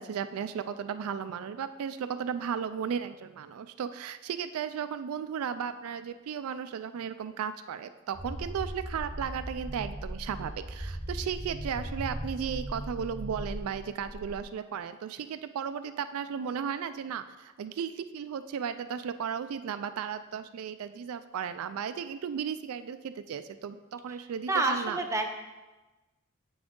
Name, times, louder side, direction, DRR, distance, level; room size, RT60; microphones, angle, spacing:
voice 1, 0.0-25.0, right 7 dB, 75° right, 11 dB, 0.3 m, -35 dB
sound 1, 8.1-14.4, right 1 dB, 50° left, 2.4 m, -38 dB
voice 2, 24.5-25.3, right 2 dB, 15° right, 3 dB, 0.6 m, -28 dB
7.7 x 6.2 x 3.7 m, 1.2 s
head